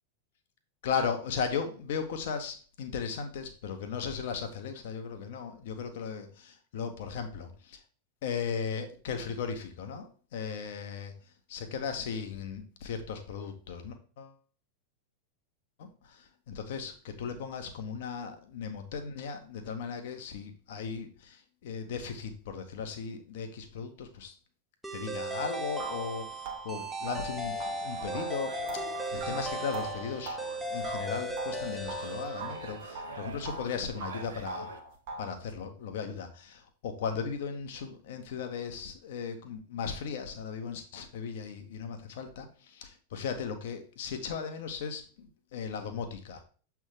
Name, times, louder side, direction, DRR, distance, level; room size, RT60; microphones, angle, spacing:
voice 1, 0.8-7.8 8.2-11.1 11.5-14.3 15.8-24.3 24.9-27.5 27.8-30.4 30.7-34.8 35.2-46.4, left 6 dB, 55° left, 7 dB, 1.1 m, -37 dB
sound 1, 24.8-33.0, right 1 dB, ahead, 0.9 m, -37 dB
sound 2, 25.2-25.3 25.8-32.1 32.4-33.7 34.0-35.4, right 3 dB, 50° right, 1.3 m, -42 dB
sound 3, 27.0-34.8, right 5 dB, 65° right, 1.0 m, -47 dB
7.4 x 3.6 x 4.8 m, 0.40 s
figure-of-eight pair, 90°, 0 cm